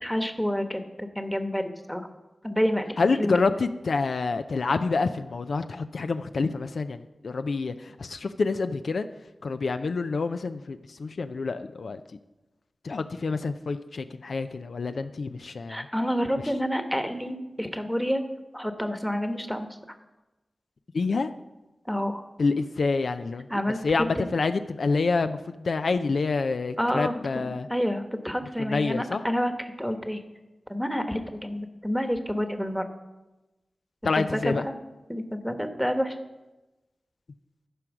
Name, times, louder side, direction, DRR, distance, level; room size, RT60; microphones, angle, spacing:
voice 1, 0.0-2.0 2.4-2.9 3.2-3.4 15.7-18.2 18.5-19.7 21.8-22.2 23.5-24.2 26.8-30.2 30.7-32.8 34.2-34.6 35.1-36.2, equal, ahead, 7 dB, 1.1 m, -29 dB
voice 2, 3.0-9.1 9.4-12.0 12.8-15.9 20.9-21.3 22.4-23.5 23.8-27.7 28.6-29.2 34.0-34.7, left 4 dB, 75° left, 9 dB, 0.4 m, -27 dB
11.0 x 4.7 x 6.1 m, 1.1 s
cardioid pair, 40°, 0 cm